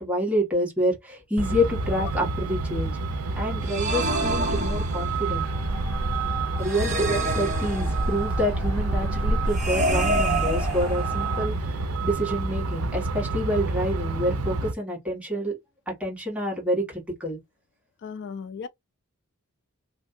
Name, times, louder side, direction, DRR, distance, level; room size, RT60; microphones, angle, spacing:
voice 1, 0.0-3.0 3.4-5.5 6.6-15.5 15.9-17.4, equal, 5° right, 1.7 m, -28 dB
Truck, 1.4-14.7, right 3 dB, 80° right, 0.5 m, -28 dB
sound 1, 3.7-5.4 6.6-8.3 9.5-11.4, right 1 dB, 35° right, 1.0 m, -28 dB
sound 2, 4.9-11.5, left 1 dB, 65° right, 2.0 m, -40 dB
voice 2, 18.0-18.7, left 5 dB, 55° left, 0.4 m, -37 dB
3.1 x 2.7 x 2.6 m
head